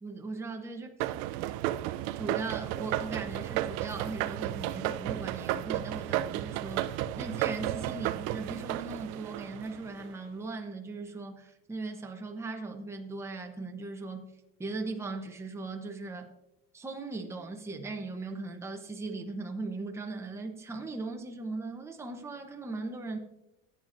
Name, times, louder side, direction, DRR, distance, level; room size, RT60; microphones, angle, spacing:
voice 1, 0.0-1.2 2.1-14.3 14.6-16.3 16.7-23.2, right 3 dB, 10° right, 3 dB, 0.8 m, -38 dB
sound 1, 1.0-10.1, right 14 dB, 80° right, 0.5 m, -33 dB
14.0 x 8.9 x 2.6 m, 0.91 s
cardioid pair, 150°, 33 cm